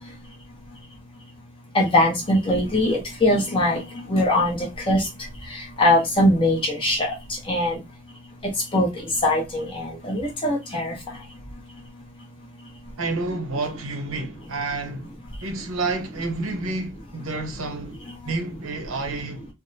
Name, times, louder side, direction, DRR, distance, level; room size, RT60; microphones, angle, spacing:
voice 1, 1.7-3.8 4.1-5.0 5.8-7.1 7.5-7.8 8.7-8.9 9.2-10.9, left 1 dB, 25° left, 0.8 m, -21 dB
voice 2, 13.0-15.1 15.4-19.5, right 3 dB, 85° right, 0.8 m, -29 dB
3.4 x 2.1 x 2.7 m
head